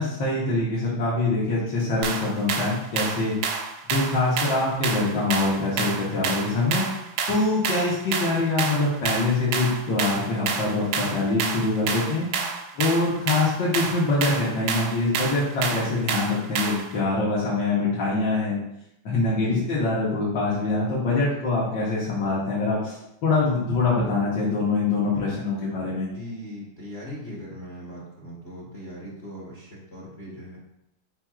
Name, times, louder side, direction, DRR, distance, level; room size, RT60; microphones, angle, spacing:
voice 1, 0.0-3.4 3.9-6.8 7.3-12.3 12.7-18.6 19.0-23.0 23.2-26.1, left 3 dB, 60° left, -7 dB, 1.5 m, -24 dB
sound 1, 2.0-16.9, right 5 dB, 90° right, 1.5 m, -29 dB
voice 2, 19.3-19.8 26.1-30.6, equal, 40° left, -7 dB, 0.9 m, -39 dB
4.6 x 4.5 x 2.4 m, 0.82 s
omnidirectional pair, 2.3 m